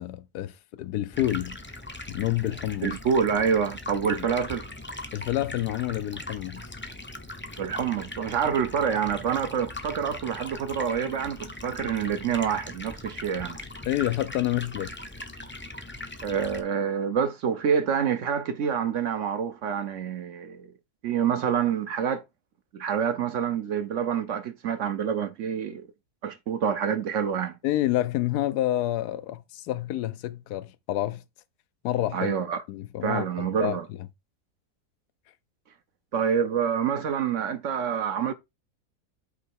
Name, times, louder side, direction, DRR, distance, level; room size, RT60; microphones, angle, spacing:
voice 1, 0.0-1.6 2.1-3.0 5.1-6.6 13.9-14.9 27.6-31.2 31.8-32.3 32.7-34.1, left 14 dB, 85° left, 1.1 m, -28 dB
Stream, 1.1-16.6, left 2 dB, 15° left, 0.4 m, -40 dB
voice 2, 2.8-4.6 7.6-13.6 16.2-20.7 21.0-22.2 22.7-25.9 26.2-27.6 32.1-32.6 33.0-33.8 36.1-38.3, right 7 dB, 60° right, 1.0 m, -27 dB
8.3 x 3.2 x 4.6 m
omnidirectional pair, 1.6 m